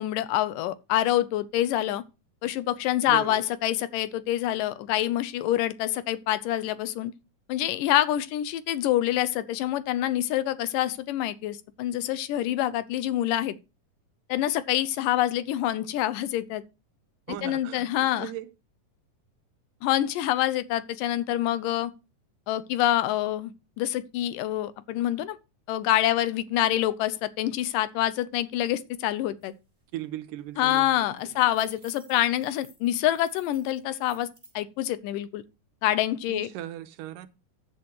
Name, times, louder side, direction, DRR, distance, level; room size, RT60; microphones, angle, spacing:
voice 1, 0.0-2.0 2.4-7.1 7.5-13.6 14.3-16.6 17.4-18.3 19.8-21.9 22.5-25.4 25.7-29.5 30.6-34.3 34.6-35.4 35.8-36.5, left 13 dB, 90° left, 2.4 m, -26 dB
voice 2, 3.1-3.5 17.3-18.5 29.9-31.4 36.3-37.3, right 13 dB, 85° right, 2.4 m, -38 dB
sound 1, 29.4-29.5 29.8-30.1 30.4-34.5, right 1 dB, 10° right, 4.2 m, -55 dB
14.0 x 7.8 x 3.1 m
omnidirectional pair, 3.8 m